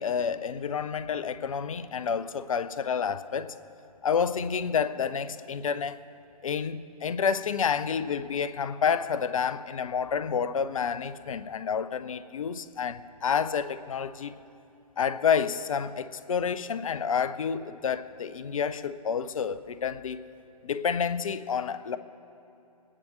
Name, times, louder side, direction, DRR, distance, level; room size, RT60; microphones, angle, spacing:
voice 1, 0.0-3.5 4.0-6.0 6.4-14.4 15.0-20.2 20.6-22.0, left 7 dB, 60° left, 13 dB, 0.6 m, -29 dB
27.5 x 9.8 x 3.1 m, 2.8 s
figure-of-eight pair, 130°, 20 cm